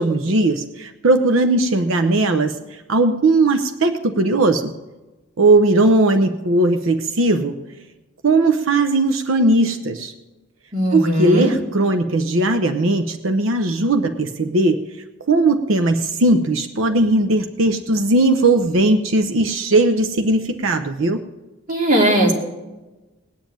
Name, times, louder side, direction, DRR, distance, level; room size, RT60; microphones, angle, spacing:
voice 1, 0.0-4.7 5.4-7.5 8.2-10.1 10.9-14.8 15.3-21.2, right 2 dB, 80° right, 7 dB, 0.8 m, -18 dB
voice 2, 10.7-11.5 21.7-22.3, right 1 dB, 40° right, 0 dB, 2.7 m, -18 dB
19.0 x 7.3 x 9.0 m, 1.1 s
head